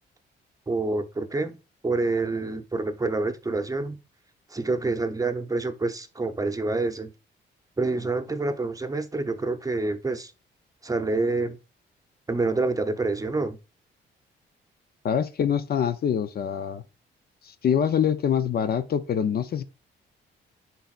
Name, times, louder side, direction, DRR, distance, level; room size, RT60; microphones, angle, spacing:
voice 1, 0.7-1.6 1.8-4.0 4.5-7.1 7.8-10.3 10.8-11.6 12.3-13.6, right 3 dB, 15° right, 0.8 m, -27 dB
voice 2, 15.0-16.8 17.4-19.6, left 8 dB, 50° left, 0.6 m, -25 dB
10.0 x 4.1 x 2.4 m
cardioid pair, 90°, 20 cm